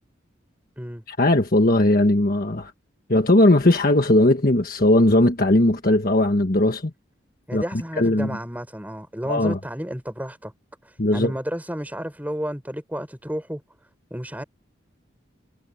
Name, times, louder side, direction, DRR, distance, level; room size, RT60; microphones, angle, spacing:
voice 1, 1.1-2.7 3.1-6.9 7.5-7.6 8.0-8.4 9.3-9.6 11.0-11.3, left 1 dB, 50° left, 1.5 m, -18 dB
voice 2, 7.5-10.5 10.8-13.6 14.1-14.4, equal, 10° right, 5.7 m, -32 dB
head